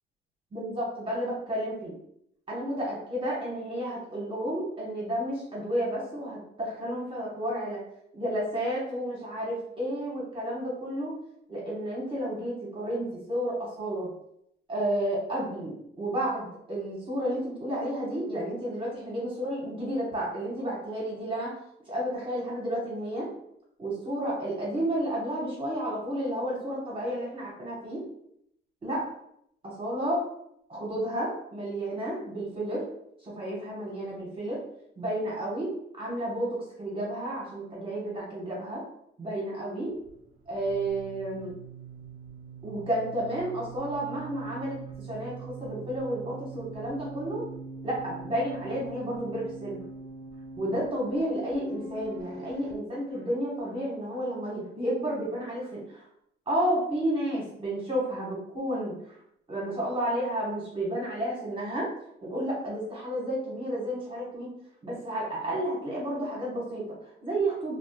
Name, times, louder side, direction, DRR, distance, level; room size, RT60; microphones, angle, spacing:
voice 1, 0.5-2.0 2.5-7.8 8.1-11.1 11.5-14.1 14.7-21.6 21.9-23.3 23.8-28.0 28.8-29.1 29.6-30.2 30.7-32.9 33.2-34.6 35.0-38.8 39.2-39.9 40.5-41.5 42.6-47.4 47.8-49.8 50.6-56.0 56.5-59.2 59.5-61.9 62.2-64.5 64.8-67.7, right 1 dB, 25° right, -5 dB, 0.9 m, -31 dB
sound 1, 39.9-52.7, right 4 dB, 85° right, 0.4 m, -43 dB
2.3 x 2.0 x 2.7 m, 0.73 s
cardioid pair, 90°, 20 cm